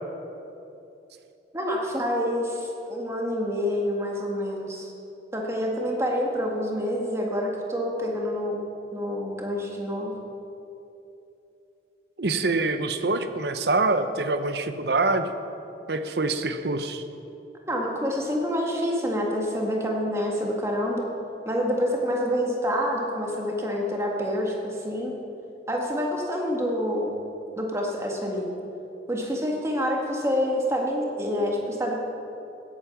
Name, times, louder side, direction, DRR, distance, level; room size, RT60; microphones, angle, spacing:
voice 1, 1.5-4.9 5.3-8.6 8.9-10.1 17.7-21.1 21.5-25.1 25.7-27.1 27.6-28.5 29.1-31.9, equal, 15° right, -1 dB, 1.7 m, -27 dB
voice 2, 12.2-15.3 15.9-17.0, right 3 dB, 65° right, 9 dB, 0.8 m, -25 dB
16.5 x 8.6 x 5.9 m, 2.9 s
head